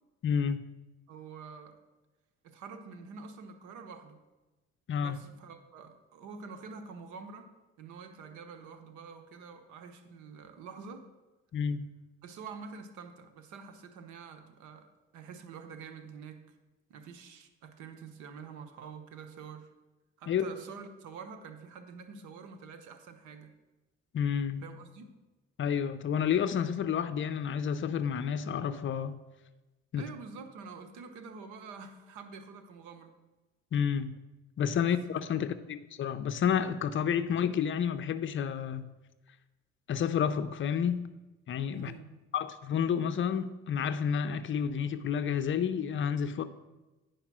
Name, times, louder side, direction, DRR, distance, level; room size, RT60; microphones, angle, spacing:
voice 1, 0.2-0.6 4.9-5.2 11.5-11.9 20.3-20.4 24.1-24.6 25.6-29.2 29.9-30.0 33.7-34.2 34.6-38.9 39.9-41.1 41.5-41.9 42.3-46.4, left 8 dB, 40° left, 0.6 m, -30 dB
voice 2, 1.1-1.8 2.4-4.2 5.0-11.1 12.2-16.5 16.9-19.7 20.2-23.5 24.6-25.2 30.0-33.1 34.7-34.9 35.3-35.5 41.7-42.2, right 5 dB, 90° right, 1.1 m, -47 dB
10.0 x 5.0 x 6.0 m
cardioid pair, 115°, 29 cm